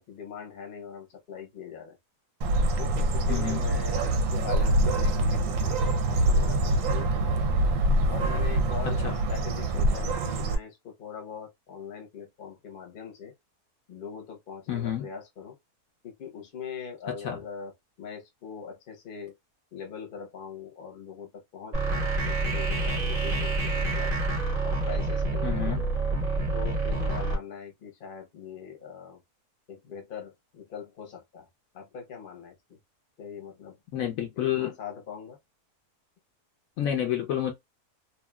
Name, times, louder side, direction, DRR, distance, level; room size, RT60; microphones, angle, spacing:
voice 1, 0.0-2.0 2.8-7.5 8.1-13.3 13.9-15.6 16.0-17.7 18.0-19.3 19.7-24.1 24.6-25.8 26.5-29.2 29.7-31.5 31.7-32.8 33.2-33.8 34.6-35.4, left 7 dB, 40° left, 0.9 m, -41 dB
Bird, 2.4-10.6, right 1 dB, 65° right, 0.9 m, -25 dB
voice 2, 3.3-3.7 8.8-9.1 14.7-15.1 17.2-17.4 25.4-25.8 33.9-34.7 36.8-37.5, left 10 dB, 70° left, 1.0 m, -29 dB
sound 1, 21.7-27.3, right 3 dB, 35° right, 0.7 m, -27 dB
3.0 x 2.5 x 2.2 m
omnidirectional pair, 1.6 m